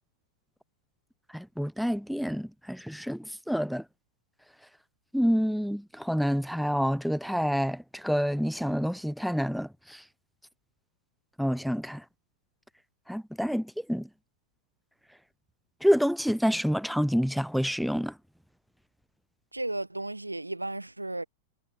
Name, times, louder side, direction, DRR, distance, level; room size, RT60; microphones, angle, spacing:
voice 1, 1.3-3.8 5.1-10.0 11.4-12.0 13.1-14.1 15.8-18.1, equal, ahead, 0.4 m, -28 dB
voice 2, 19.5-21.2, right 2 dB, 85° right, 0.8 m, -34 dB
figure-of-eight pair, 90°, 0 cm